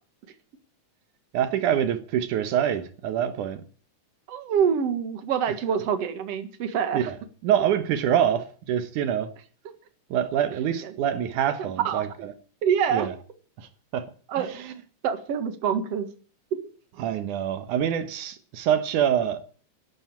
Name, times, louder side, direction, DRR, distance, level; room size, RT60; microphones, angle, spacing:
voice 1, 1.3-3.6 6.9-7.2 7.4-9.3 10.1-12.3 12.9-13.2 13.6-14.1 14.4-14.7 17.0-19.5, right 9 dB, 80° right, 2.6 m, -25 dB
voice 2, 4.3-7.1 11.8-12.0 12.6-13.1 14.3-14.5 15.0-16.1, right 7 dB, 55° right, 2.6 m, -25 dB
12.5 x 11.5 x 8.6 m
omnidirectional pair, 3.5 m